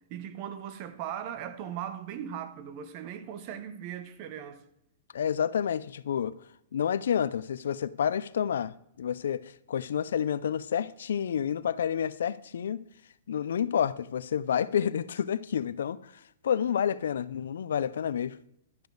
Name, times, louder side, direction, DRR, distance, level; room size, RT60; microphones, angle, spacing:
voice 1, 0.1-4.6, right 9 dB, 35° right, 0.8 m, -38 dB
voice 2, 5.1-6.3 6.7-12.8 13.3-16.1 16.4-18.4, left 8 dB, 85° left, 0.4 m, -29 dB
11.5 x 6.7 x 3.9 m
hypercardioid pair, 160°, 0 cm